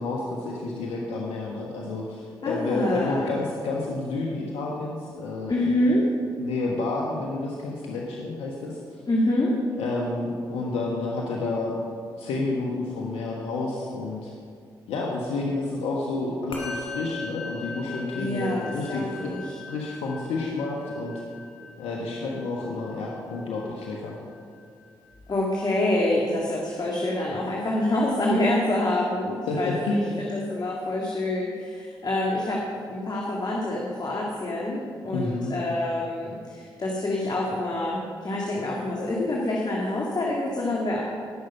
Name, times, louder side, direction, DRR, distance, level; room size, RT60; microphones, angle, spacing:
voice 1, 0.0-6.0 6.4-9.0 9.8-11.7 12.2-14.3 14.9-19.3 19.7-21.2 21.8-24.1 29.5-30.3 35.1-35.5, left 3 dB, 85° left, -2 dB, 1.3 m, -30 dB
voice 2, 2.4-3.4 5.5-6.1 9.1-9.5 18.2-19.6 25.3-32.6 32.9-41.0, left 1 dB, 45° left, -3 dB, 2.2 m, -26 dB
Musical instrument, 16.5-26.1, left 3 dB, 70° left, 2.7 m, -41 dB
18.0 x 6.6 x 5.6 m, 2.2 s
supercardioid pair, 50°, 10 cm